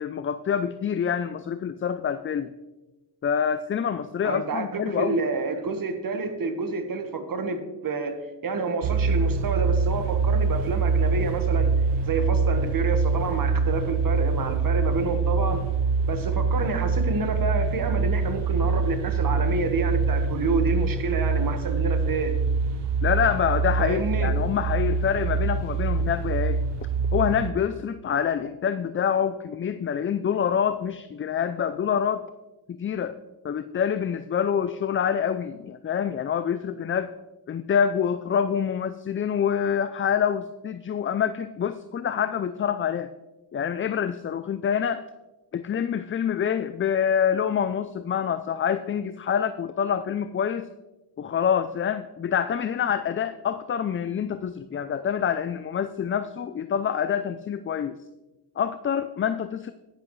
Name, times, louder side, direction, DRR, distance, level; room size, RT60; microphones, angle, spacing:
voice 1, 0.0-2.5 3.2-5.2 23.0-26.6 27.1-32.3 32.7-33.2 33.4-37.1 37.5-43.1 43.5-45.0 45.5-50.7 51.2-58.0 58.6-59.7, left 8 dB, 30° left, 12 dB, 0.4 m, -26 dB
voice 2, 4.2-8.2 8.4-11.7 12.1-15.6 16.1-22.3 23.8-24.3, right 3 dB, 55° right, 7 dB, 1.4 m, -28 dB
sound 1, 8.8-27.5, right 4 dB, 85° right, 0.8 m, -25 dB
11.0 x 10.0 x 3.1 m, 1.1 s
cardioid pair, 100°, 41 cm